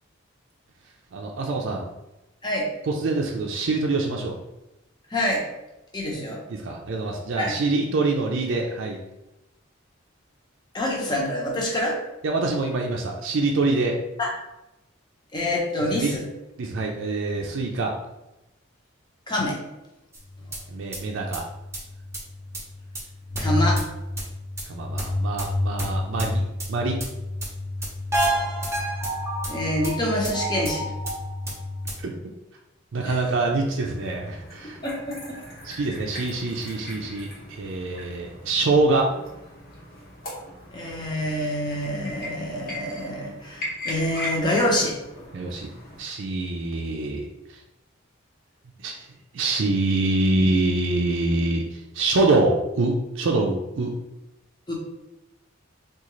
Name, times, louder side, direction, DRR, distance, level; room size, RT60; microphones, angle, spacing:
voice 1, 1.1-1.8 2.9-4.4 6.6-9.0 12.2-14.0 15.9-16.1 16.6-17.9 20.7-21.4 24.7-27.0 32.0-32.1 32.9-34.8 35.6-39.1 45.3-45.7 46.0-47.3 48.8-48.9 49.3-53.9, right 2 dB, 65° right, 0 dB, 0.4 m, -25 dB
voice 2, 5.1-5.4 5.9-6.4 7.4-7.6 10.7-12.0 14.2-14.3 15.3-16.2 19.3-19.6 23.4-23.8 29.4-30.9 33.0-33.2 34.6-35.4 40.7-45.0 54.7-54.8, left 1 dB, 20° left, -2 dB, 0.8 m, -26 dB
sound 1, 20.1-32.0, equal, 15° right, 0.7 m, -29 dB
sound 2, 33.5-46.0, left 1 dB, 50° left, 1.0 m, -39 dB
3.7 x 2.4 x 3.0 m, 0.94 s
head